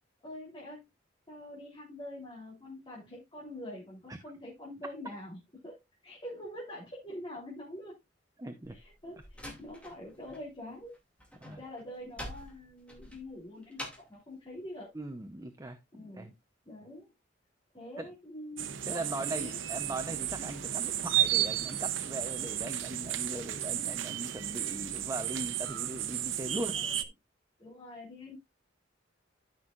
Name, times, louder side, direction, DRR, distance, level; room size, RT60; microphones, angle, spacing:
voice 1, 0.2-0.8 1.3-5.4 5.6-5.8 6.0-7.9 8.7-10.9 11.5-14.9 15.9-16.3 16.6-17.1 17.7-19.6 26.5-27.0 27.6-28.4, left 1 dB, 25° left, 3.3 m, -45 dB
voice 2, 8.4-8.8 11.4-11.6 14.9-15.8 16.1-16.3 18.0-18.1 18.9-26.9, right 2 dB, 20° right, 0.8 m, -39 dB
Slam, 8.6-10.5 10.7-14.2, left 1 dB, 5° left, 2.5 m, -46 dB
sound 1, 18.6-27.0, right 11 dB, 90° right, 0.8 m, -33 dB
13.5 x 6.2 x 2.5 m
head